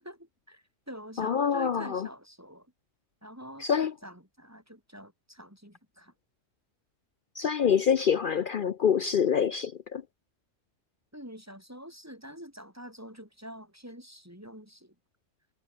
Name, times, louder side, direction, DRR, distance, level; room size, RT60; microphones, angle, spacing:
voice 1, 0.0-2.7 3.2-3.7 4.0-6.1 11.1-14.9, equal, 10° right, 6.2 m, -46 dB
voice 2, 1.2-2.1 3.6-3.9 7.4-10.0, left 7 dB, 55° left, 0.6 m, -26 dB
omnidirectional pair, 1.3 m